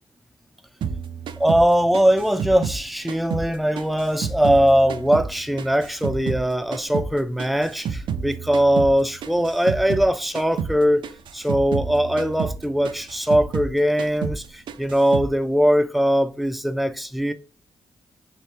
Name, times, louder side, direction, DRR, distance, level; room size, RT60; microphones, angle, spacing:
sound 1, 0.8-3.5 3.8-6.5 6.7-10.1 10.3-10.8 11.0-13.7 14.0-14.4 14.7-15.3, right 6 dB, 75° right, 0.4 m, -30 dB
voice 1, 1.4-11.0 11.3-17.3, equal, ahead, 0.5 m, -21 dB
3.6 x 2.9 x 3.2 m
cardioid pair, 70°, 8 cm